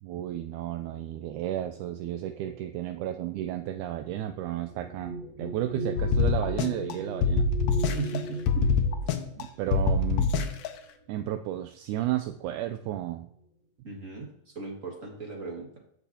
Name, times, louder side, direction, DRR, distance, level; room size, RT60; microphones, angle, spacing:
voice 1, 0.0-7.5 9.4-10.3 11.1-13.3, right 12 dB, 80° right, 7 dB, 2.0 m, -33 dB
sound 1, 2.3-11.2 12.1-12.2 12.6-13.2, right 1 dB, 15° right, 3.0 m, -40 dB
sound 2, 6.0-6.9 7.2-8.2 8.5-9.4 9.7-10.7, left 4 dB, 70° left, 2.0 m, -24 dB
voice 2, 7.9-8.7 13.8-14.3 14.5-15.7, right 4 dB, 30° right, -1 dB, 1.7 m, -37 dB
15.0 x 5.5 x 2.8 m, 0.73 s
omnidirectional pair, 3.6 m